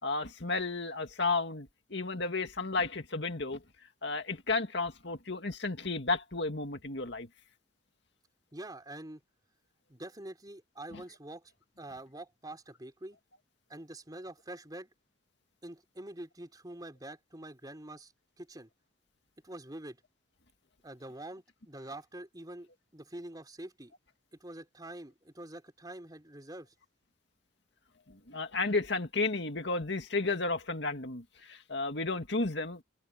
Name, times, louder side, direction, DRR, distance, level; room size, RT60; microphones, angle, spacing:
voice 1, 0.0-3.6 4.0-7.3 28.1-32.8, left 3 dB, 60° left, 2.3 m, -33 dB
voice 2, 8.5-9.2 9.9-11.5 11.8-13.2 13.7-14.9 15.6-18.1 18.4-18.7 19.4-20.0 20.8-23.9 24.4-26.7, right 1 dB, 20° right, 3.7 m, -45 dB
head